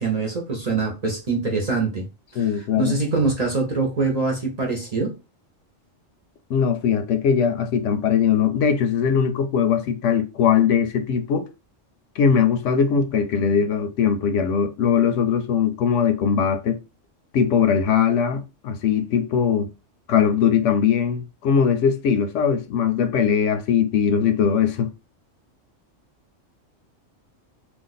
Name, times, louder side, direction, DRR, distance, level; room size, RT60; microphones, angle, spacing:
voice 1, 0.0-2.1 2.3-2.5 2.8-5.1, right 3 dB, 35° right, 0.8 m, -24 dB
voice 2, 2.4-3.0 6.5-11.5 12.2-16.8 17.3-19.7 20.1-24.9, left 7 dB, 75° left, 0.9 m, -20 dB
2.6 x 2.4 x 3.8 m
omnidirectional pair, 1.3 m